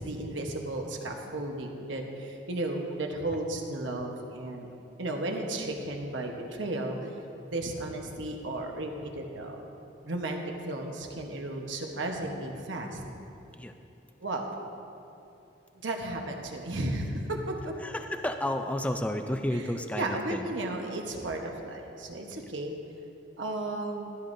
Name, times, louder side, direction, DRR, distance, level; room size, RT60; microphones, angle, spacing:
voice 1, 0.0-4.7 5.0-7.1 7.4-9.6 10.0-13.0 14.2-14.5 15.8-17.7 19.5-22.8 23.4-24.1, right 2 dB, 70° right, 2 dB, 1.1 m, -34 dB
voice 2, 17.8-20.5, left 1 dB, 5° left, 6 dB, 0.4 m, -31 dB
14.0 x 13.0 x 2.7 m, 2.8 s
head